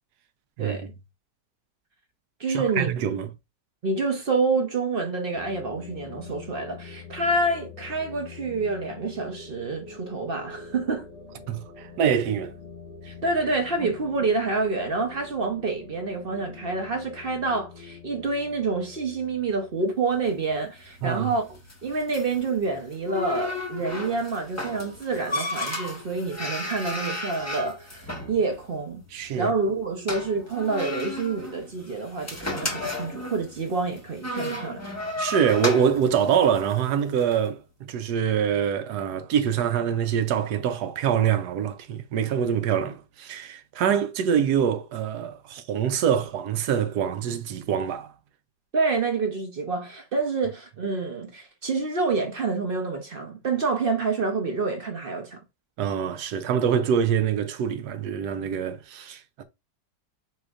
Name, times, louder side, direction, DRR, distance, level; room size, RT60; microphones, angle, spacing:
voice 1, 0.6-0.9 2.4-2.9 3.8-11.1 13.0-29.0 29.4-34.9 48.7-55.4, right 3 dB, 45° right, 0.7 m, -27 dB
voice 2, 2.5-3.3 11.5-12.5 21.0-21.3 29.1-29.5 35.2-48.1 55.8-59.4, right 8 dB, 70° right, 1.2 m, -25 dB
sound 1, 5.3-20.3, left 5 dB, 40° left, 0.6 m, -45 dB
sound 2, 20.1-37.4, left 1 dB, 10° left, 0.8 m, -34 dB
4.9 x 4.3 x 2.4 m
omnidirectional pair, 1.9 m